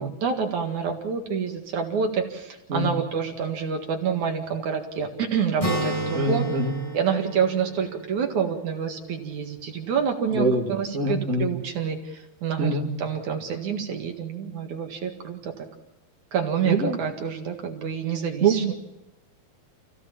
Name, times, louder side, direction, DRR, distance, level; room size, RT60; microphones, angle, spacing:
voice 1, 0.0-6.5 6.9-12.7 13.0-15.7 16.3-18.7, right 6 dB, 55° right, 3 dB, 3.0 m, -28 dB
Acoustic guitar, 5.6-9.3, equal, 10° left, 3.4 m, -32 dB
voice 2, 6.1-6.7 10.3-11.5 12.6-12.9 16.6-17.0 18.4-18.7, right 3 dB, 25° right, -1 dB, 2.1 m, -24 dB
28.5 x 16.5 x 7.2 m, 0.96 s
omnidirectional pair, 4.3 m